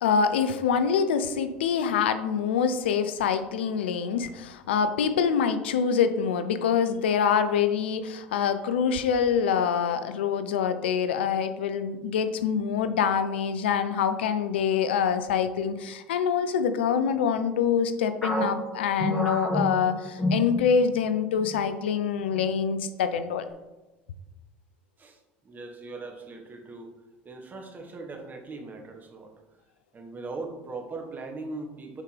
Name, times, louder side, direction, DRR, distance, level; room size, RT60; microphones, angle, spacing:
voice 1, 0.0-23.4, left 7 dB, 80° left, 11 dB, 0.5 m, -25 dB
sound 1, 18.2-21.1 21.4-21.6 22.2-22.7, equal, 10° left, 1.7 m, -30 dB
voice 2, 25.0-26.9 27.2-29.3 29.9-32.0, right 3 dB, 30° right, 3 dB, 1.3 m, -39 dB
7.4 x 5.0 x 3.3 m, 1.1 s
hypercardioid pair, 75°, 6 cm